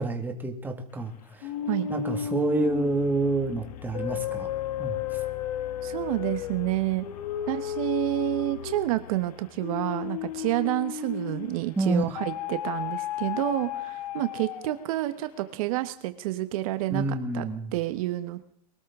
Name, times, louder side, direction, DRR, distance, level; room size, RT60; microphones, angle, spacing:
voice 1, 0.0-1.5 1.9-4.5 4.8-5.2 11.8-12.0 16.9-17.7, right 2 dB, 10° right, 4 dB, 1.8 m, -28 dB
sound 1, 1.4-11.6 12.1-14.9, left 10 dB, 85° left, 1.3 m, -34 dB
voice 2, 5.8-7.0 7.5-17.4 17.7-18.5, right 16 dB, 65° right, 11 dB, 1.0 m, -29 dB
23.0 x 13.0 x 3.6 m, 0.68 s
supercardioid pair, 150°, 20 cm